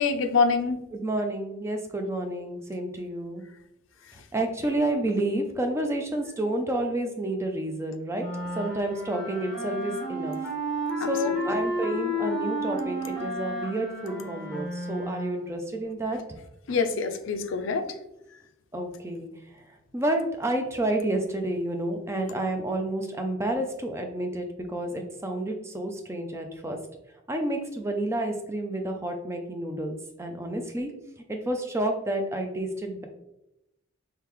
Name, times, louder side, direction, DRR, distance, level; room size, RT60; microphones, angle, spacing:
voice 1, 0.0-0.8 11.0-11.6 16.7-17.9, left 4 dB, 70° left, 8 dB, 0.4 m, -26 dB
voice 2, 0.9-3.4 4.3-8.3 8.6-10.4 11.1-16.2 18.7-19.3 19.9-26.8 27.3-30.9 31.3-33.0, right 1 dB, 15° right, 4 dB, 0.4 m, -30 dB
sound 1, 8.2-15.5, equal, ahead, 1.1 m, -32 dB
3.8 x 3.3 x 3.0 m, 0.88 s
head